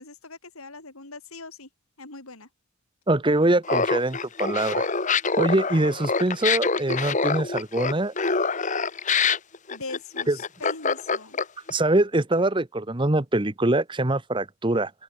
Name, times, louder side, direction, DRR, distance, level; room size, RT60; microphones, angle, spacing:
voice 1, 0.0-1.7 2.0-2.5 9.7-11.4, left 3 dB, 75° left, 4.3 m, -41 dB
voice 2, 3.1-4.9 5.4-8.1 10.3-10.4 11.7-14.9, right 2 dB, 20° right, 0.9 m, -23 dB
Laughter, 3.6-11.7, left 5 dB, 35° left, 1.3 m, -25 dB
open air
head